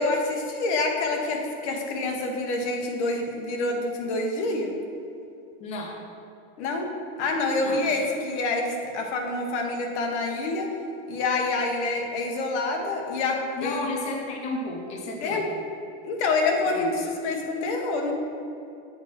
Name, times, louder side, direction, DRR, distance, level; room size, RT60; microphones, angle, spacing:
voice 1, 0.0-4.7 6.6-6.9 7.2-10.7 11.1-13.9 15.2-15.4 16.1-18.1, left 3 dB, 70° left, 2 dB, 1.4 m, -27 dB
voice 2, 5.6-6.0 7.6-7.8 13.6-15.4 16.6-16.9, left 2 dB, 20° left, 1 dB, 0.5 m, -33 dB
7.5 x 4.4 x 5.9 m, 2.7 s
supercardioid pair, 165°, 35 cm